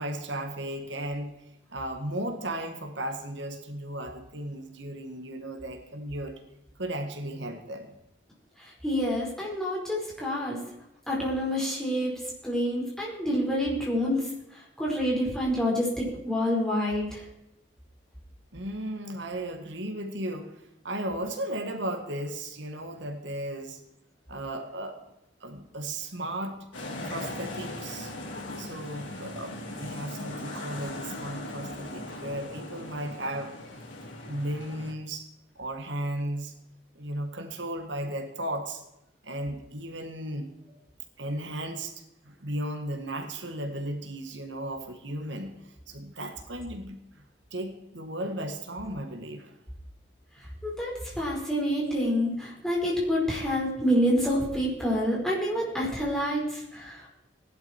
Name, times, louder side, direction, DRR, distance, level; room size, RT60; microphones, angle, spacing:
voice 1, 0.0-1.3 1.7-6.4 6.8-7.9 18.5-23.8 24.3-25.0 25.4-26.7 27.0-28.1 28.6-33.5 34.2-35.3 35.6-36.5 37.0-38.8 39.2-40.5 41.2-41.9 42.3-47.2 47.5-49.6, right 1 dB, 75° right, 5 dB, 1.8 m, -35 dB
voice 2, 8.6-10.6 11.1-12.1 12.4-14.2 14.8-17.2 50.6-57.1, equal, 5° left, -5 dB, 4.8 m, -27 dB
sound 1, 26.7-34.9, left 1 dB, 85° left, 3.6 m, -39 dB
17.0 x 11.5 x 4.5 m, 0.85 s
head